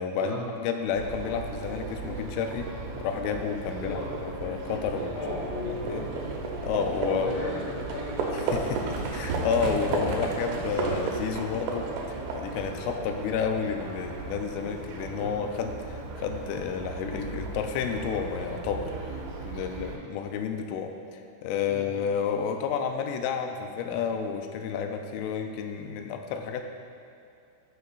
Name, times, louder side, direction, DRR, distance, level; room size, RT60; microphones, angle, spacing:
voice 1, 0.0-2.7 3.0-5.1 5.7-6.0 6.6-7.4 8.3-19.1 19.4-26.6, left 6 dB, 90° left, 5 dB, 3.1 m, -31 dB
Livestock farm animals working animals, 1.0-19.9, right 3 dB, 90° right, 3.4 m, -34 dB
voice 2, 3.8-4.1 5.0-6.1 7.1-8.2 9.7-9.8 10.2-10.3 15.1-15.3 19.5-19.9 21.7-21.8, left 2 dB, 70° left, -11 dB, 3.7 m, -36 dB
14.0 x 7.0 x 2.4 m, 2.5 s
omnidirectional pair, 5.7 m